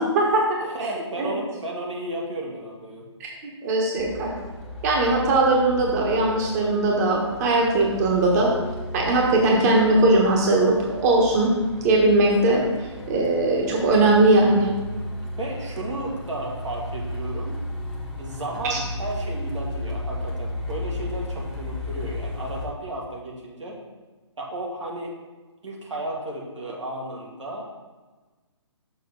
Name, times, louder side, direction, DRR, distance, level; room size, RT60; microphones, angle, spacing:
voice 1, 0.0-0.6 1.2-1.3 3.2-3.3 3.6-4.3 4.8-8.5 8.9-11.5 11.8-12.6 13.1-14.7 18.7-18.8, right 2 dB, 35° right, -1 dB, 1.2 m, -20 dB
voice 2, 0.6-3.0 15.4-17.6 18.2-23.8 24.4-25.2 25.6-27.6, right 1 dB, 80° right, -2 dB, 2.0 m, -33 dB
Truck, 4.0-22.7, left 1 dB, 5° right, 0.8 m, -34 dB
6.7 x 6.0 x 3.8 m, 1.3 s
figure-of-eight pair, 140°, 15 cm